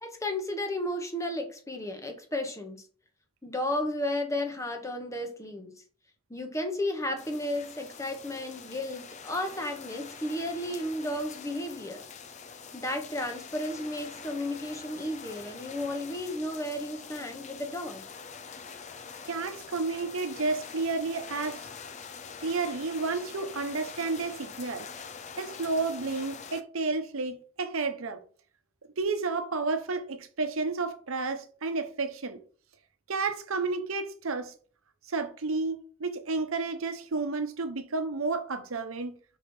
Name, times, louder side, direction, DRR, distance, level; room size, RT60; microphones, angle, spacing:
voice 1, 0.0-2.9 3.4-5.7 6.3-12.0 12.7-18.0, left 1 dB, 15° left, 1.0 m, -33 dB
sound 1, 7.2-26.6, left 6 dB, 35° left, 0.5 m, -45 dB
voice 2, 19.3-21.7 22.4-24.9 25.4-28.2 29.0-32.4 33.1-34.5 35.1-39.2, right 3 dB, 80° right, 0.9 m, -31 dB
5.6 x 4.9 x 4.3 m
head